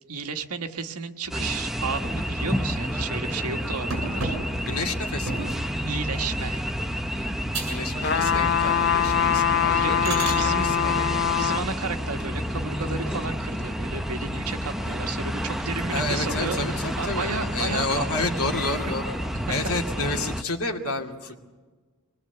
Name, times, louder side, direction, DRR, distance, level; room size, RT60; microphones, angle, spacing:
voice 1, 0.1-4.4 5.8-6.6 7.1-7.3 9.4-10.8 11.2-18.3, right 4 dB, 85° right, 5 dB, 1.6 m, -33 dB
sound 1, 1.3-20.4, equal, ahead, 0.8 m, -30 dB
sound 2, 3.9-5.7 6.3-6.6 7.0-7.1 7.5-7.9 8.2-8.7 9.1-9.2 9.7-10.4 12.4-13.1 13.6-13.7 14.1-14.2 14.4-15.2 15.6-16.2 16.6-17.2 17.8-19.5, right 2 dB, 60° right, 7.5 m, -36 dB
voice 2, 4.7-5.5 7.7-11.2 15.9-19.1 19.5-21.4, left 2 dB, 75° left, 3 dB, 2.5 m, -30 dB
sound 3, 8.0-11.7 12.2-12.3, left 8 dB, 50° left, 1.0 m, -23 dB
24.5 x 21.0 x 8.0 m, 1.4 s
head